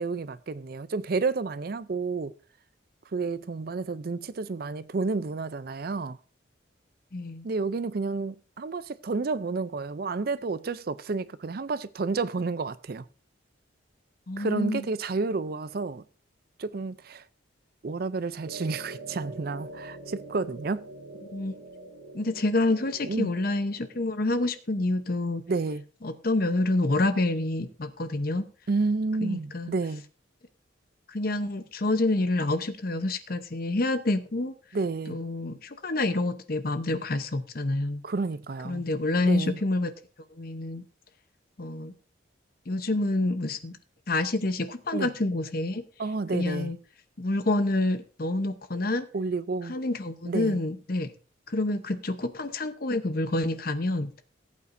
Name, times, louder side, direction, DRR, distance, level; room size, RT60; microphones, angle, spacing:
voice 1, 0.0-2.3 3.1-6.2 7.4-13.1 14.4-16.0 16.6-17.2 17.8-20.9 23.0-23.3 25.5-25.8 28.7-30.0 34.7-35.2 38.0-38.8 39.2-39.6 44.9-45.1 46.0-46.7 49.1-49.8 50.2-50.6, right 4 dB, 50° right, 0.4 m, -30 dB
voice 2, 7.1-7.5 14.3-14.8 21.3-21.5 22.1-25.4 26.0-28.4 29.2-29.7 31.1-34.5 35.1-38.0 38.6-39.9 40.4-40.8 41.6-41.9 42.7-43.8 44.1-45.8 46.3-46.8 47.2-49.0 49.7-51.1 51.5-54.1, left 2 dB, 45° left, 0.8 m, -27 dB
sound 1, 18.4-24.5, right 2 dB, 85° right, 1.9 m, -44 dB
18.5 x 8.4 x 2.6 m
head